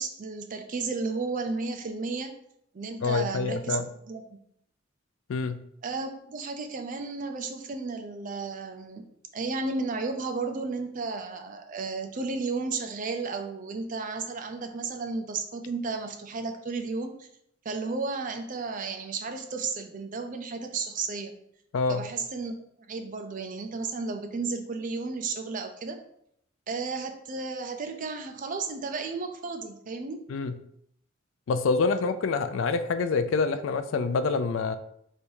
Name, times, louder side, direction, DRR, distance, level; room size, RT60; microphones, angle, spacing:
voice 1, 0.0-2.3 2.7-3.8 4.1-4.2 5.8-9.0 9.3-17.3 17.6-21.3 21.9-26.0 26.7-30.2, right 4 dB, 40° right, 6 dB, 0.4 m, -33 dB
voice 2, 3.0-3.9 5.3-5.6 21.7-22.1 30.3-30.6 31.5-34.7, left 4 dB, 70° left, 10 dB, 0.4 m, -26 dB
3.3 x 2.7 x 4.5 m, 0.72 s
head